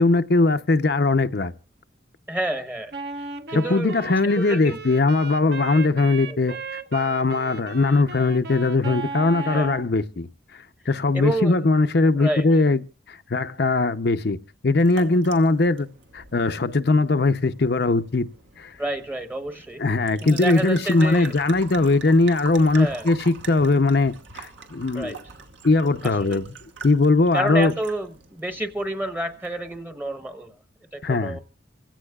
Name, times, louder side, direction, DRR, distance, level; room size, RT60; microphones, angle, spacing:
voice 1, 0.0-1.5 3.5-6.5 6.9-10.3 10.9-12.8 13.1-14.4 14.6-15.9 16.1-18.3 18.6-18.8 19.8-25.2 25.6-26.5 26.8-27.7 31.0-31.4, left 3 dB, 55° left, 0.6 m, -20 dB
voice 2, 2.3-2.9 3.5-3.9 4.2-4.8 5.1-5.2 6.3-6.6 9.4-9.7 11.1-11.5 12.2-12.5 18.8-19.8 20.2-21.4 22.7-23.1 24.9-25.2 26.0-26.4 27.3-30.5 30.9-31.4, right 1 dB, 10° right, 1.0 m, -29 dB
Wind instrument woodwind instrument, 2.9-9.9, right 4 dB, 55° right, 1.2 m, -36 dB
sound 1, 14.8-29.8, right 5 dB, 75° right, 2.4 m, -43 dB
27.5 x 16.5 x 2.3 m
head